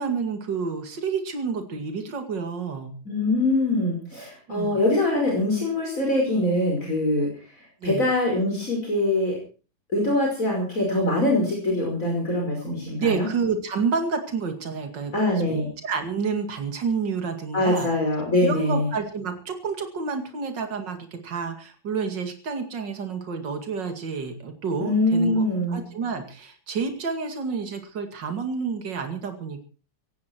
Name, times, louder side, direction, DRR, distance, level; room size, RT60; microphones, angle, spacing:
voice 1, 0.0-2.9 4.5-4.8 7.8-8.1 13.0-15.1 15.4-17.9 18.4-29.6, right 5 dB, 70° right, 6 dB, 2.9 m, -29 dB
voice 2, 3.1-7.3 7.8-9.4 9.9-13.3 15.1-15.7 17.5-18.9 24.8-25.8, left 1 dB, 45° left, -1 dB, 5.7 m, -23 dB
17.0 x 16.5 x 4.5 m, 0.36 s
omnidirectional pair, 2.0 m